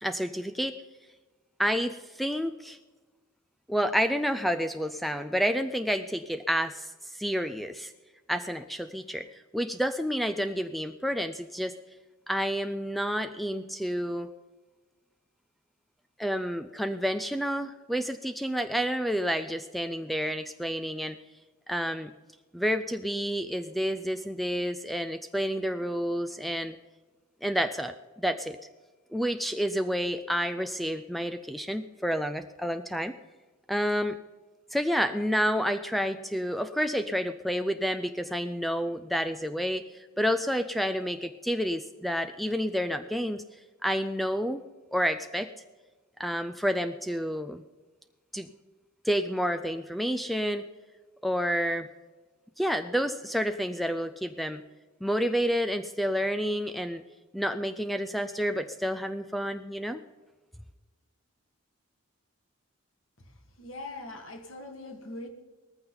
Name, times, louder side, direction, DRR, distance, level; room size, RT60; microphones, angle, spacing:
voice 1, 0.0-0.8 1.6-2.8 3.7-7.9 8.3-9.3 9.5-11.8 12.3-14.3 16.2-21.2 21.7-22.1 22.5-26.8 27.4-28.6 29.1-33.1 33.7-34.2 34.7-43.4 43.8-44.6 44.9-45.5 46.2-47.6 48.3-48.5 49.0-50.7 51.2-51.9 52.6-54.6 55.0-57.0 57.3-60.0, equal, ahead, 9 dB, 0.4 m, -29 dB
voice 2, 63.6-65.3, left 2 dB, 60° left, 5 dB, 1.9 m, -41 dB
19.0 x 14.5 x 4.0 m, 1.3 s
head